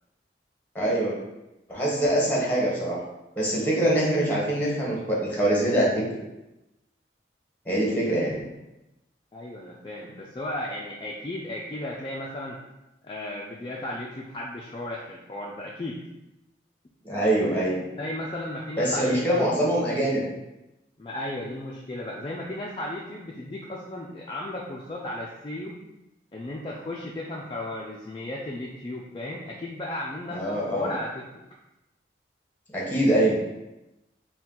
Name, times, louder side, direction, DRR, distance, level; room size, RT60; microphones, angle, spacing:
voice 1, 0.7-1.2 1.7-3.0 3.4-6.0 7.7-8.3 17.0-17.8 18.8-20.2 30.3-30.9 32.7-33.4, right 1 dB, 10° left, -5 dB, 1.1 m, -24 dB
voice 2, 9.3-12.6 13.0-16.0 17.9-19.5 21.0-25.8 26.3-31.2, left 1 dB, 25° left, -3 dB, 0.3 m, -35 dB
4.3 x 2.2 x 3.7 m, 0.95 s
head